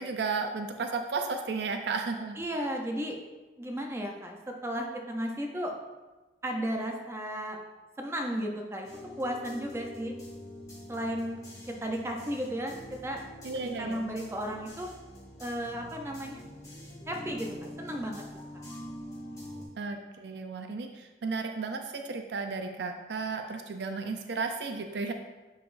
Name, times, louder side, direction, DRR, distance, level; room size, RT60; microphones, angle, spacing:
voice 1, 0.0-2.4 13.4-14.0 19.8-25.1, right 4 dB, 65° right, 5 dB, 0.4 m, -34 dB
voice 2, 2.4-3.2 3.6-5.7 6.4-7.6 8.0-8.9 9.2-10.1 10.9-11.4 11.7-13.2 13.8-14.9 15.4-16.4 17.1-18.4 19.6-19.7, equal, 15° right, 2 dB, 0.5 m, -34 dB
sound 1, 8.8-19.6, left 1 dB, 20° left, 1.9 m, -45 dB
9.8 x 4.0 x 2.5 m, 1.2 s
head